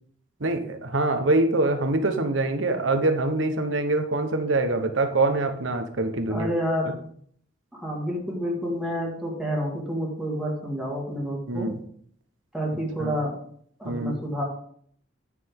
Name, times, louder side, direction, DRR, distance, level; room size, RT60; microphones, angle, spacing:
voice 1, 0.4-6.5 6.9-7.0 11.5-11.8 13.0-13.2 13.8-14.2, right 2 dB, 80° right, 7 dB, 1.2 m, -24 dB
voice 2, 6.3-7.0 7.7-11.8 12.5-13.4 13.8-14.4, equal, ahead, -3 dB, 2.1 m, -29 dB
9.8 x 6.8 x 3.7 m, 0.63 s
head